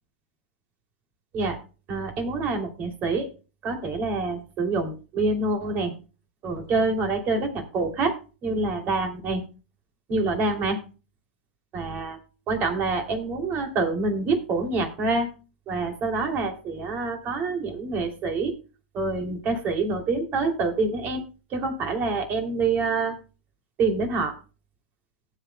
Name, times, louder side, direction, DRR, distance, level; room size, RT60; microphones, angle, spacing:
voice 1, 1.9-3.3 3.6-5.9 6.4-8.2 8.4-9.4 10.1-10.8 11.7-12.2 12.5-15.3 15.7-18.5 18.9-21.2 21.5-23.1 23.8-24.4, right 3 dB, 35° right, 5 dB, 2.8 m, -26 dB
18.0 x 8.3 x 2.2 m, 0.33 s
hypercardioid pair, 100°, 5 cm